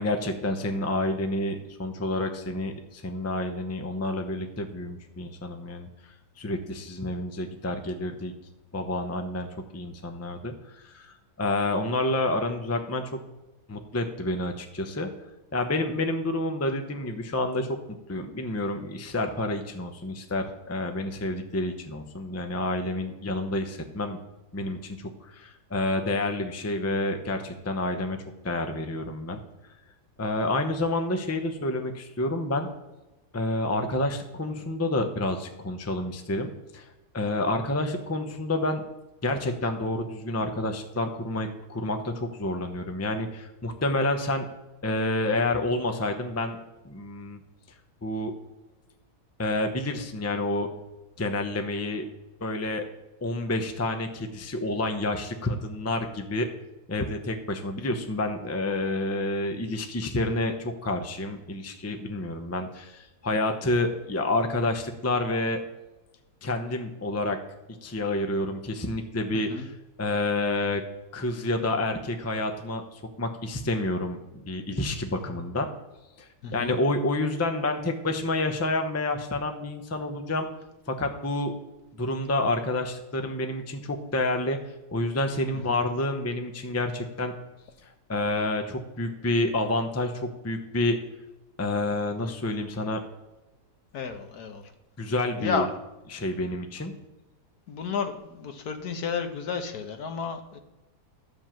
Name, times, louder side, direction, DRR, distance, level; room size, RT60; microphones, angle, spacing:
voice 1, 0.0-5.9 6.4-8.3 8.7-13.1 13.7-15.1 15.5-17.8 18.1-24.2 24.5-28.2 28.4-29.4 30.2-32.7 33.3-36.9 37.1-38.8 39.2-44.5 44.8-46.6 46.8-47.4 48.0-48.3 49.4-50.7 51.2-52.1 52.4-52.9 53.2-56.5 56.9-65.6 66.4-67.4 67.8-69.7 70.0-70.8 71.1-74.2 74.4-75.7 76.2-80.5 80.9-81.5 82.0-84.6 84.9-87.3 87.8-91.0 91.6-93.0 95.0-95.7 96.1-96.9, left 2 dB, 15° left, 6 dB, 0.6 m, -29 dB
voice 2, 69.3-69.7 76.4-76.8 85.8-85.9 93.9-94.7 95.4-95.7 97.7-100.6, left 5 dB, 75° left, 6 dB, 1.5 m, -32 dB
12.0 x 5.3 x 7.4 m, 1.1 s
omnidirectional pair, 1.7 m